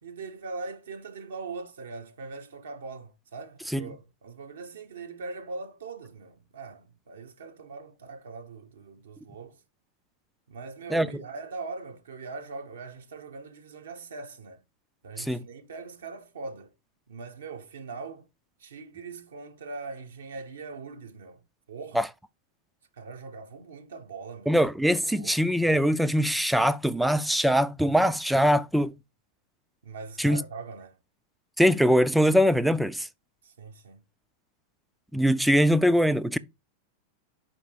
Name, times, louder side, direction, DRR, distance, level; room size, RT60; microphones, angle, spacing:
voice 1, 0.0-9.6 10.5-14.6 15.0-16.7 17.1-18.3 18.6-21.4 21.7-22.0 22.9-24.6 25.1-25.6 29.8-31.0 33.4-34.0, right 4 dB, 65° right, 0.9 m, -41 dB
voice 2, 24.5-28.9 30.2-30.4 31.6-33.1 35.1-36.4, equal, ahead, 0.4 m, -22 dB
5.0 x 4.4 x 4.8 m
figure-of-eight pair, 90°, 0 cm